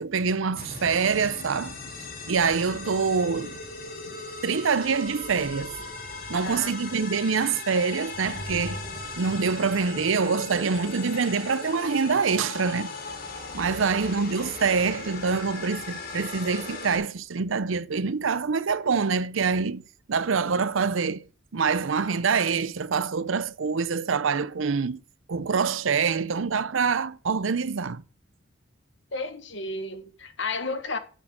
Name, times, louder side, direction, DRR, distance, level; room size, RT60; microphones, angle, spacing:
voice 1, 0.0-1.8 2.3-3.6 4.1-4.2 4.4-5.8 6.3-8.8 9.2-12.9 13.5-19.8 20.1-21.2 21.5-25.0 25.3-28.0, right 5 dB, 80° right, 0.6 m, -25 dB
sound 1, 0.6-17.0, left 3 dB, 45° left, 2.2 m, -38 dB
sound 2, 2.2-4.4 4.9-7.6 7.9-10.4 11.2-11.3, equal, 30° left, 3.8 m, -45 dB
voice 2, 6.3-7.0 13.6-14.2 29.1-31.0, left 3 dB, 65° left, 1.4 m, -34 dB
8.9 x 6.5 x 6.3 m
head